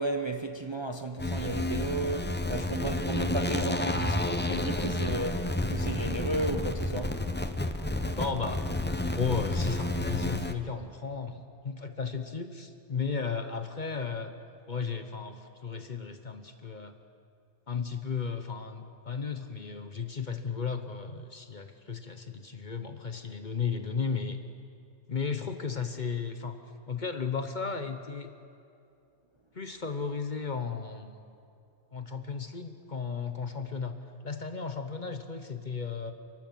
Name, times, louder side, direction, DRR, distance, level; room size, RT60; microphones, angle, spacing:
voice 1, 0.0-7.3, right 2 dB, 25° right, 0.7 m, -34 dB
sound 1, 1.2-10.5, left 1 dB, 10° left, 0.6 m, -30 dB
voice 2, 8.1-8.7 9.1-14.3 14.7-16.9 17.7-24.4 25.1-26.6 26.9-28.3 29.5-31.3 31.9-34.0 34.2-36.1, left 5 dB, 40° left, 1.0 m, -34 dB
29.5 x 12.0 x 7.4 m
omnidirectional pair, 1.3 m